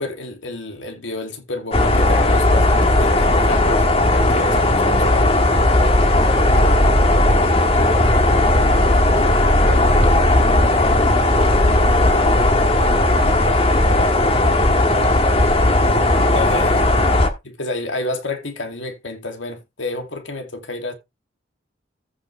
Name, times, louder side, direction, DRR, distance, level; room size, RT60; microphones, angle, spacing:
voice 1, 0.0-5.3 6.5-6.7 16.3-16.9 17.4-20.9, left 2 dB, 85° left, 2.4 m, -30 dB
sound 1, 1.7-17.3, left 1 dB, 30° left, 1.4 m, -16 dB
voice 2, 5.7-9.9 10.5-15.5, equal, 15° left, 4.2 m, -38 dB
14.5 x 6.2 x 3.2 m
head